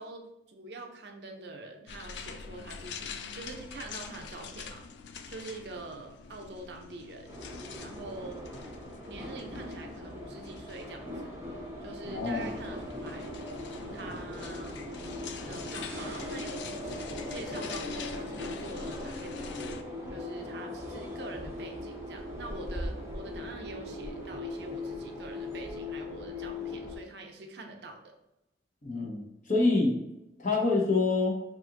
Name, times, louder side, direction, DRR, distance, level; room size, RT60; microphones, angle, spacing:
voice 1, 0.0-4.8 5.3-7.3 7.8-8.4 9.1-11.3 11.8-13.3 13.9-14.8 15.5-28.0, right 2 dB, 70° right, 3 dB, 0.5 m, -45 dB
sound 1, 1.9-19.8, left 5 dB, 75° left, 0.3 m, -45 dB
sound 2, 7.3-27.0, left 1 dB, 15° right, 0.6 m, -39 dB
voice 2, 12.1-12.5 28.8-30.0 30.4-31.4, left 3 dB, 45° left, -1 dB, 0.8 m, -26 dB
2.8 x 2.5 x 3.7 m, 0.90 s
head